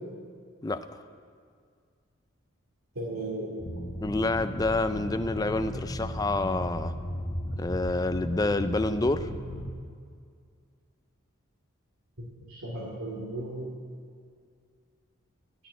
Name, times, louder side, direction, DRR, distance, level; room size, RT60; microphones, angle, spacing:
voice 1, 3.0-3.5 12.2-13.7, right 2 dB, 85° right, -6 dB, 2.4 m, -36 dB
sound 1, 3.6-9.7, equal, 40° left, 1.1 m, -36 dB
voice 2, 4.0-6.9 7.6-9.3, left 2 dB, 15° left, 10 dB, 0.4 m, -28 dB
15.0 x 6.3 x 9.3 m, 2.1 s
head